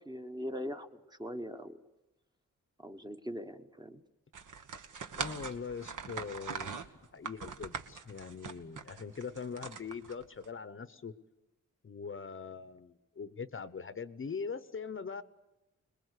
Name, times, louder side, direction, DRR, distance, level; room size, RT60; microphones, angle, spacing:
voice 1, 0.0-1.8 2.8-4.0, equal, 15° right, 6 dB, 1.0 m, -41 dB
sound 1, 4.3-10.5, right 5 dB, 75° right, 1.5 m, -42 dB
voice 2, 5.1-6.8 7.1-11.1 11.8-15.2, left 5 dB, 40° left, 13 dB, 0.8 m, -42 dB
26.0 x 21.0 x 8.2 m, 0.99 s
wide cardioid pair, 170°, 31 cm